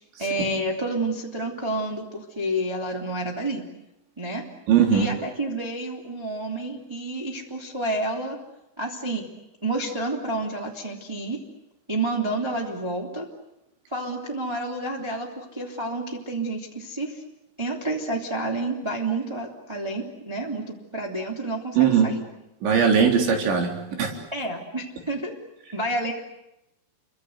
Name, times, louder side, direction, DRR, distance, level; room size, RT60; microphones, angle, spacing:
voice 1, 0.2-3.6 4.2-4.4 4.9-8.4 8.8-9.3 9.6-11.4 11.9-13.2 13.9-17.2 17.6-21.8 22.0-22.2 24.3-25.3 25.7-26.1, right 2 dB, 10° right, -1 dB, 1.8 m, -29 dB
voice 2, 4.7-5.1 21.8-22.1 22.6-24.1, right 7 dB, 60° right, 3 dB, 5.9 m, -19 dB
30.0 x 24.5 x 8.1 m, 0.90 s
omnidirectional pair, 5.9 m